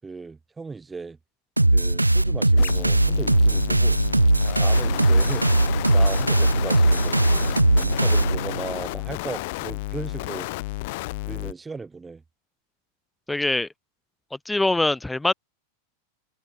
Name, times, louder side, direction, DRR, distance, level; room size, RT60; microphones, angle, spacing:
voice 1, 0.0-1.2 1.7-4.0 4.5-5.5 5.9-10.5 11.2-12.2, right 4 dB, 10° right, 7.4 m, -37 dB
sound 1, 1.6-8.7, right 2 dB, 85° right, 1.1 m, -19 dB
sound 2, 2.6-11.5, left 23 dB, 50° left, 0.6 m, -32 dB
voice 2, 13.3-13.7 14.3-15.3, left 2 dB, 5° left, 2.1 m, -23 dB
figure-of-eight pair, 90°, 0 cm